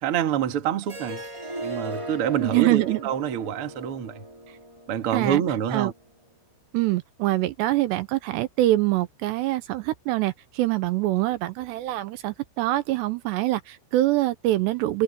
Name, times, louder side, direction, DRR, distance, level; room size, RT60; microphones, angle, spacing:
voice 1, 0.0-1.2 1.6-4.2 4.9-5.9, right 9 dB, 50° right, 1.6 m, -26 dB
Harp, 0.8-6.0, right 1 dB, 15° right, 0.9 m, -38 dB
voice 2, 2.4-3.0 5.1-5.4 5.7-5.9 6.7-15.0, right 16 dB, 80° right, 2.8 m, -24 dB
omnidirectional pair, 5.3 m